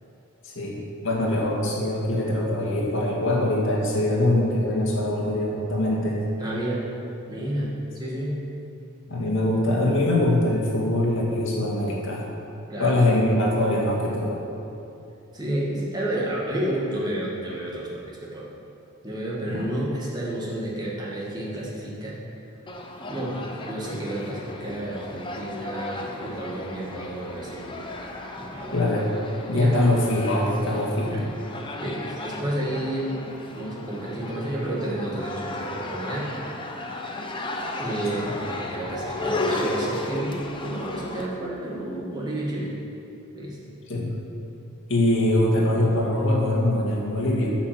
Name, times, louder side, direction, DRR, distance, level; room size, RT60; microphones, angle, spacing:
voice 1, 0.4-6.2 9.1-12.3 12.8-14.4 19.5-19.6 28.7-29.1 29.5-31.2 38.2-38.3 43.9-44.1 44.9-47.5, left 1 dB, 60° left, -3 dB, 2.2 m, -23 dB
voice 2, 6.4-6.9 7.3-8.4 12.7-13.0 15.3-18.5 19.0-22.2 23.1-27.9 28.4-28.8 29.5-29.8 31.1-31.3 31.8-33.1 33.5-36.3 37.8-42.7 43.3-43.6, right 1 dB, 20° right, -5 dB, 2.1 m, -30 dB
sound 1, 22.7-41.3, left 2 dB, 25° left, 0.8 m, -34 dB
9.5 x 6.2 x 7.6 m, 2.7 s
head